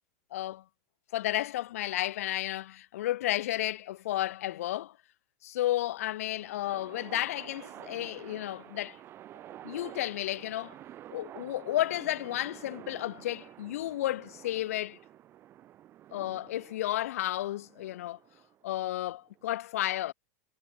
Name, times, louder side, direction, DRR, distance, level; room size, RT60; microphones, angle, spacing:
voice 1, 0.3-0.6 1.1-4.9 5.4-9.0 9.6-10.7 11.1-15.0 16.1-18.2 18.6-20.1, left 14 dB, 85° left, 0.7 m, -32 dB
sound 1, 6.1-19.5, right 12 dB, 30° right, 2.9 m, -50 dB
supercardioid pair, 150°, 8 cm